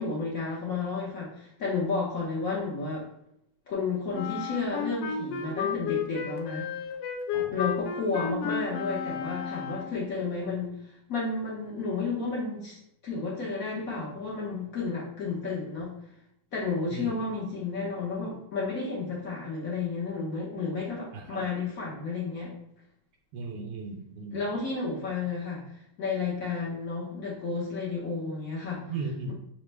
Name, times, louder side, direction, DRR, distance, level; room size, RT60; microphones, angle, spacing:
voice 1, 0.0-3.1 3.7-6.7 7.5-10.8 11.1-12.8 13.0-15.9 16.5-22.5 24.3-25.6 26.0-28.8, left 4 dB, 55° left, -6 dB, 1.2 m, -32 dB
Wind instrument woodwind instrument, 4.1-10.1, left 7 dB, 80° left, 1.3 m, -33 dB
voice 2, 21.1-21.5 23.3-24.4 28.9-29.3, right 3 dB, 85° right, 2 dB, 1.3 m, -36 dB
6.0 x 2.1 x 3.2 m, 0.76 s
omnidirectional pair, 2.0 m